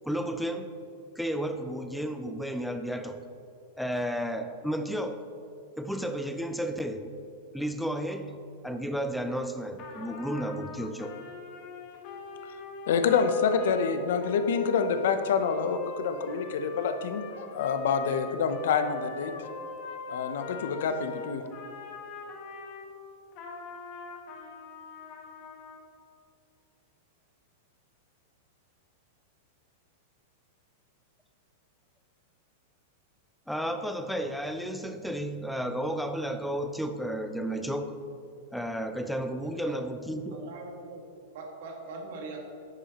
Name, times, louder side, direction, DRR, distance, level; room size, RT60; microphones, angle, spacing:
voice 1, 0.0-0.7 1.2-3.2 3.8-5.2 5.8-7.1 7.5-8.3 8.6-11.1 33.5-37.9 38.5-40.4, equal, ahead, 7 dB, 0.4 m, -32 dB
Trumpet, 9.8-22.9 23.3-25.9, left 4 dB, 35° left, 1.2 m, -43 dB
voice 2, 12.9-19.3 20.1-21.4, left 6 dB, 70° left, 8 dB, 0.7 m, -27 dB
voice 3, 40.3-41.0 41.3-42.4, right 3 dB, 60° right, 0 dB, 1.9 m, -41 dB
10.5 x 7.8 x 3.0 m, 2.6 s
supercardioid pair, 160°, 0 cm